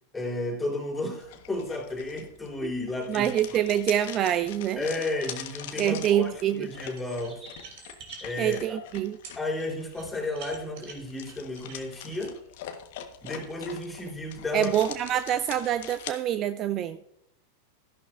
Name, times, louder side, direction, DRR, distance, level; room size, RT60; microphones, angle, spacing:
voice 1, 0.1-3.4 4.8-7.4 8.2-8.8 9.4-12.4 13.2-14.7, left 2 dB, 10° left, 0 dB, 3.7 m, -33 dB
sound 1, 1.2-16.1, left 10 dB, 50° left, 1.2 m, -44 dB
voice 2, 3.1-4.8 5.8-6.7 8.4-9.2 14.5-17.0, right 11 dB, 30° right, 13 dB, 0.5 m, -26 dB
sound 2, 6.3-8.6 12.4-12.5 13.2-13.3 14.4-14.5, right 2 dB, 15° right, 2.0 m, -52 dB
sound 3, 6.7-8.6 9.2-9.4 9.9-12.3, right 5 dB, 50° right, 2.9 m, -46 dB
14.0 x 11.0 x 2.5 m, 0.76 s
figure-of-eight pair, 90°, 0 cm